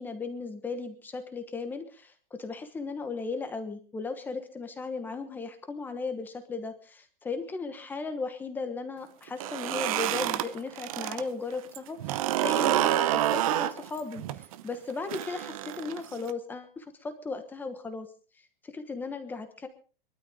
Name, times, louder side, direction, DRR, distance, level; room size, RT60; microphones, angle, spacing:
voice 1, 0.0-18.1 18.6-19.7, left 4 dB, 5° left, 8 dB, 1.2 m, -36 dB
sound 1, 9.3-11.2 11.5-16.3, right 13 dB, 35° right, 0.9 m, -28 dB
23.0 x 13.0 x 3.7 m, 0.37 s
supercardioid pair, 170°, 29 cm